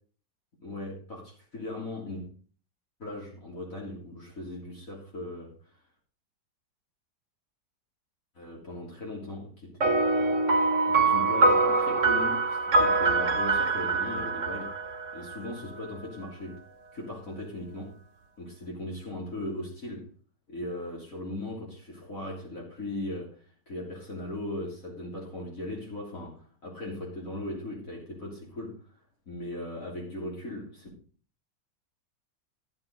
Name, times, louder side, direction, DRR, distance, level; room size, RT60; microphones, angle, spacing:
voice 1, 0.6-2.3 3.0-5.5 8.4-10.4 10.9-14.7 15.1-16.6 16.9-17.9 18.4-20.1 20.5-23.4 23.7-28.8 29.3-30.9, left 1 dB, 50° left, 3.6 m, -38 dB
sound 1, 9.8-15.6, right 3 dB, 45° right, 1.5 m, -24 dB
13.0 x 7.7 x 5.3 m
omnidirectional pair, 1.9 m